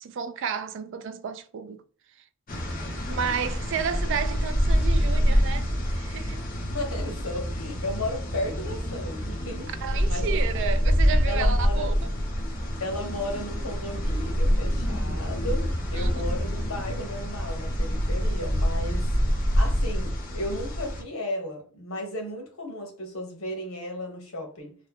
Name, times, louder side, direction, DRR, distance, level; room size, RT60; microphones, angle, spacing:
voice 1, 0.0-1.8 3.1-6.4 9.8-12.1 15.9-16.1, right 6 dB, 60° right, 0.4 m, -32 dB
sound 1, 2.5-21.0, equal, 40° left, 0.9 m, -26 dB
voice 2, 6.7-9.7 10.0-10.6 11.3-11.9 12.8-19.1 19.6-24.7, left 1 dB, 80° left, 1.2 m, -34 dB
3.1 x 2.2 x 3.6 m
head